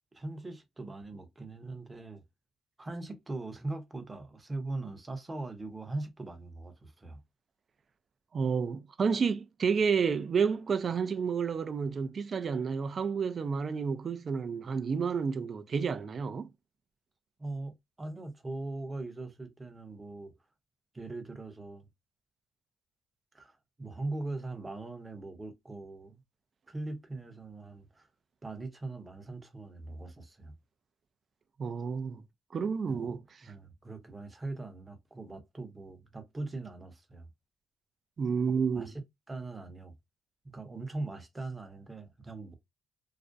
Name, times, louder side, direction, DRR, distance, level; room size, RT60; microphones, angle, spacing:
voice 1, 0.1-2.2 2.8-7.2 17.4-20.3 20.9-21.9 23.3-26.2 26.7-28.1 28.4-30.6 32.9-33.1 33.4-37.3 38.5-39.0 39.3-39.9 40.4-42.5, right 2 dB, 20° right, 0.7 m, -41 dB
voice 2, 8.3-16.5 31.6-32.2 32.5-33.2 38.2-38.9, right 6 dB, 45° right, 0.3 m, -30 dB
2.4 x 2.1 x 2.5 m
cardioid pair, 90°, 0 cm